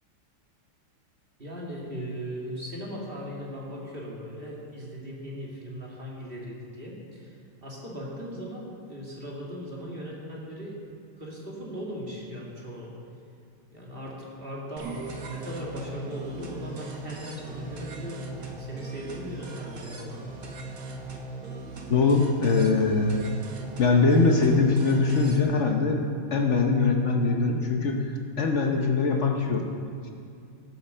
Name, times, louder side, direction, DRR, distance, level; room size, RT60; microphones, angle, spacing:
voice 1, 1.4-10.8 11.2-12.9 13.7-20.2, equal, 25° right, -3 dB, 2.1 m, -38 dB
sound 1, 14.8-25.4, right 2 dB, 45° right, 1.2 m, -39 dB
voice 2, 21.9-23.2 23.8-26.0 26.3-29.6 30.0-30.1, left 4 dB, 65° left, 3 dB, 0.7 m, -22 dB
13.0 x 8.1 x 6.6 m, 2.5 s
omnidirectional pair, 2.3 m